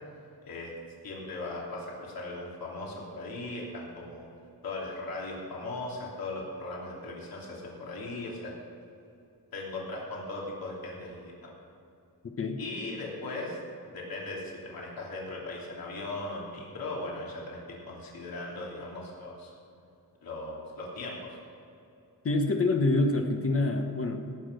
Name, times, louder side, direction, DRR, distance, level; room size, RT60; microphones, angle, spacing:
voice 1, 0.4-0.7 1.0-4.3 4.6-8.5 9.5-11.5 12.6-13.6 13.9-19.5 20.2-21.3, left 2 dB, 70° left, -3 dB, 3.0 m, -38 dB
voice 2, 22.2-24.2, left 2 dB, 35° left, 4 dB, 1.2 m, -26 dB
17.0 x 6.1 x 6.7 m, 2.7 s
cardioid pair, 110°, 37 cm